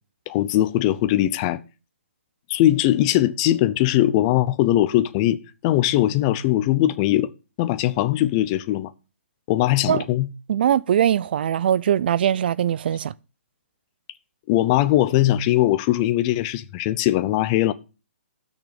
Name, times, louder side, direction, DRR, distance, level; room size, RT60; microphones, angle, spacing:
voice 1, 0.3-1.6 2.5-7.3 7.6-8.9 9.5-10.3 14.5-17.7, left 14 dB, 25° left, 0.6 m, -20 dB
voice 2, 10.5-13.1, right 10 dB, 50° right, 0.5 m, -21 dB
13.5 x 6.5 x 5.1 m
hypercardioid pair, 155°, 7 cm